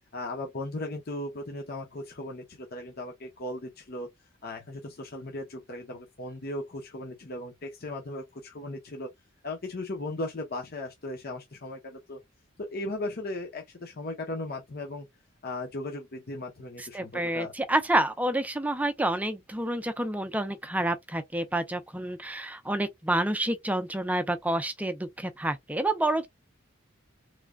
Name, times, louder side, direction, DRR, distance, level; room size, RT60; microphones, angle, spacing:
voice 1, 0.1-4.1 4.4-9.1 9.4-12.2 12.6-15.1 15.4-17.5, left 2 dB, 50° left, 0.8 m, -37 dB
voice 2, 16.8-26.3, right 1 dB, 5° right, 0.5 m, -28 dB
3.7 x 3.2 x 2.2 m
head